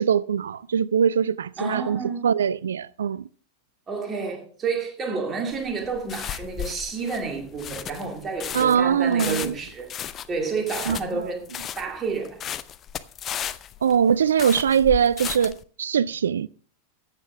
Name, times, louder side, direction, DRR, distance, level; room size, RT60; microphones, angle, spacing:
voice 1, 0.0-3.2 8.5-9.5 10.9-11.2 13.8-16.5, right 7 dB, 65° right, 0.4 m, -22 dB
voice 2, 1.6-2.3 3.9-9.9 10.3-12.5, right 4 dB, 20° right, 2.2 m, -30 dB
sound 1, 5.5-15.6, left 10 dB, 30° left, 0.6 m, -34 dB
13.5 x 9.0 x 3.4 m
figure-of-eight pair, 90°, 0 cm